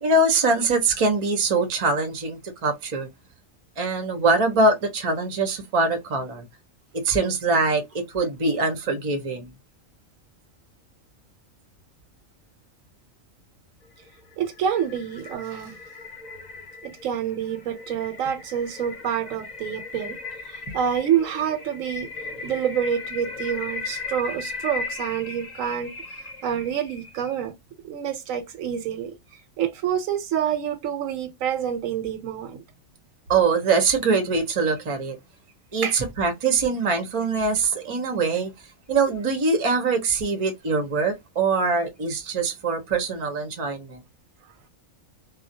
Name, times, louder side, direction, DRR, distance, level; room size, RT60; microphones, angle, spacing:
voice 1, 0.0-3.1 3.8-6.4 6.9-9.5 33.3-35.2 35.7-38.5 38.9-44.0, right 3 dB, 40° right, 0.5 m, -23 dB
sound 1, 14.0-27.4, left 4 dB, 45° left, 0.6 m, -37 dB
voice 2, 14.4-15.8 16.8-20.2 20.4-22.1 22.4-27.5 27.8-29.1 29.6-32.6 35.8-36.0, right 9 dB, 85° right, 1.0 m, -27 dB
2.3 x 2.0 x 2.7 m
omnidirectional pair, 1.4 m